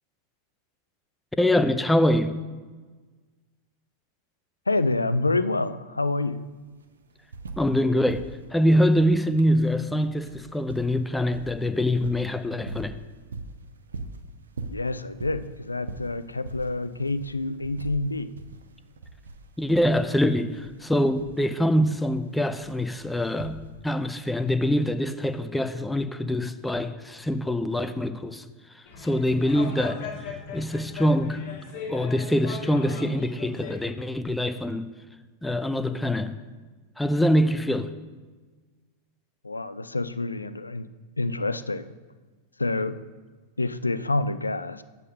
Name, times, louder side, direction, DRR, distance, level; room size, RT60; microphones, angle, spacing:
voice 1, 1.4-2.4 7.6-8.2 8.5-12.9 19.6-28.4 28.8-30.1 30.5-31.4 31.9-34.9 35.4-36.4 37.0-37.9, equal, 5° left, 0.5 m, -24 dB
voice 2, 4.7-6.4 14.7-18.3 39.4-40.9 41.2-41.9 42.6-43.0 43.6-44.8, left 2 dB, 80° left, 0.4 m, -27 dB
sound 1, 6.0-6.1 6.3-7.8 8.0-24.0 25.1-25.2, right 3 dB, 70° right, 0.6 m, -42 dB
sound 2, 28.9-33.8, left 6 dB, 45° left, 1.6 m, -38 dB
8.1 x 5.4 x 5.4 m
figure-of-eight pair, 90°, 0 cm